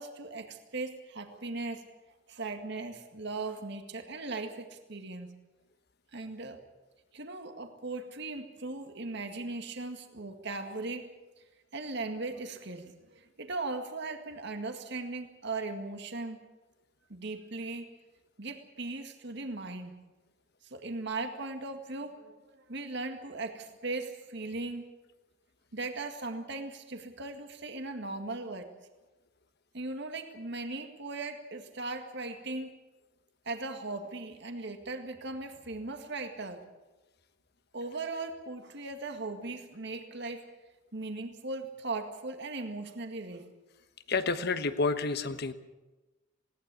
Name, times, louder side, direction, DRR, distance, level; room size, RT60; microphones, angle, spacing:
voice 1, 0.0-1.8 2.3-5.3 6.1-6.6 7.1-11.1 11.7-16.4 17.1-17.9 18.4-19.9 20.7-24.9 25.7-28.7 29.7-32.8 33.5-36.6 37.7-40.4 40.9-43.5, right 3 dB, 60° right, 6 dB, 2.0 m, -38 dB
voice 2, 44.1-45.5, left 3 dB, 55° left, 11 dB, 1.3 m, -29 dB
20.0 x 18.0 x 8.4 m, 1.1 s
head